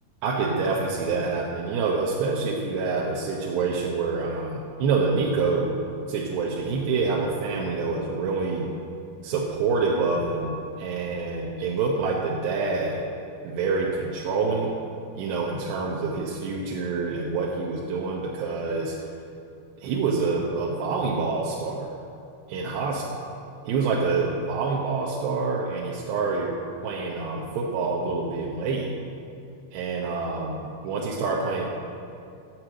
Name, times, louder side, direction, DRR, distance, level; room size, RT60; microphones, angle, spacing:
voice 1, 0.2-5.8 6.1-8.7 9.2-13.1 13.4-14.8 15.2-19.0 19.8-21.9 22.5-23.0 23.7-26.5 26.8-28.9 29.7-31.7, right 4 dB, 90° right, -2 dB, 3.3 m, -26 dB
17.0 x 6.7 x 7.8 m, 2.6 s
omnidirectional pair, 4.7 m